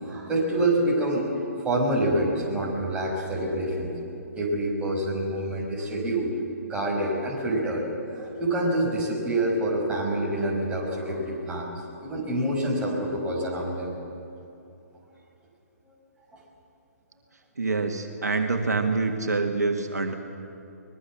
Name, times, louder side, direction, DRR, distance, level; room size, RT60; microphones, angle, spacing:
voice 1, 0.0-4.1 4.3-6.3 6.6-7.9 8.1-11.7 12.0-13.9, right 1 dB, 10° right, -3 dB, 5.6 m, -27 dB
voice 2, 17.6-20.1, right 3 dB, 80° right, 4 dB, 2.0 m, -26 dB
24.0 x 21.0 x 7.4 m, 2.8 s
figure-of-eight pair, 135°, 9 cm